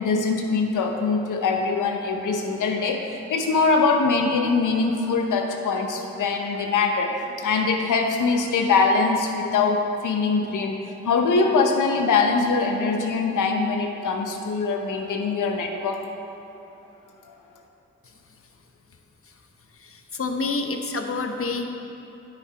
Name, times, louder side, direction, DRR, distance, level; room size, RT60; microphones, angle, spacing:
voice 1, 0.0-10.8 11.0-16.2 17.3-17.4, left 4 dB, 85° left, 3 dB, 0.9 m, -23 dB
voice 2, 19.7-21.6, left 3 dB, 45° left, 5 dB, 0.9 m, -28 dB
9.2 x 7.2 x 4.5 m, 3.0 s
supercardioid pair, 40°, 30 cm